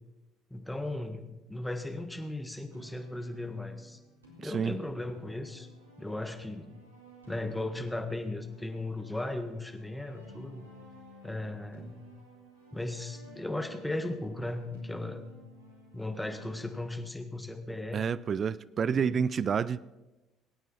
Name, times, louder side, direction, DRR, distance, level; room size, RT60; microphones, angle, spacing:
voice 1, 0.5-4.0 4.4-5.7 6.0-6.7 7.3-10.7 11.2-12.0 12.7-15.3 15.9-18.0 18.9-19.2, left 2 dB, 5° left, 1.6 m, -37 dB
sound 1, 2.7-16.9, left 1 dB, 90° right, 2.4 m, -54 dB
voice 2, 4.4-4.7 17.9-19.8, right 6 dB, 40° right, 0.4 m, -29 dB
22.5 x 9.1 x 4.5 m
figure-of-eight pair, 55°, 0 cm